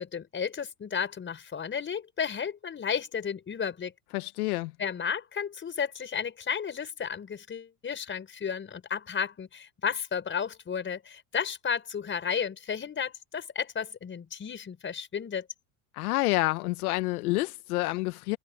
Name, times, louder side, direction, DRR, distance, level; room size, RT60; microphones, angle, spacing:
voice 1, 0.0-3.9 4.8-15.5, left 7 dB, 25° left, 5.2 m, -33 dB
voice 2, 4.1-4.7 15.9-18.4, left 21 dB, 85° left, 1.2 m, -28 dB
supercardioid pair, 115°, 43 cm